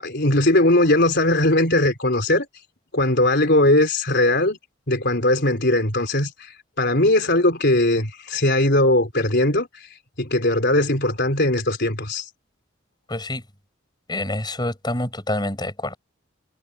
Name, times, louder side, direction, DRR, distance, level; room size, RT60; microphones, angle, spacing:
voice 1, 0.0-2.5 2.9-4.6 4.9-12.3, left 1 dB, 55° left, 4.4 m, -19 dB
voice 2, 13.1-13.4 14.1-16.0, left 1 dB, 20° left, 7.0 m, -27 dB
head